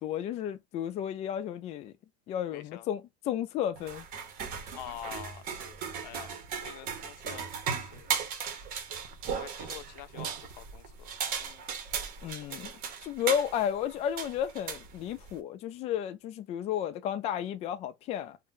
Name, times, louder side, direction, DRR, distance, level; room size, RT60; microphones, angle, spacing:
voice 1, 0.0-1.9 2.3-4.0 12.2-12.7 13.0-18.4, left 10 dB, 30° left, 0.4 m, -33 dB
voice 2, 2.5-2.9 4.7-8.1 9.3-11.6, left 12 dB, 85° left, 0.6 m, -47 dB
sound 1, 3.8-15.4, right 6 dB, 45° right, 0.8 m, -37 dB
2.6 x 2.1 x 3.6 m
cardioid pair, 155°, 21 cm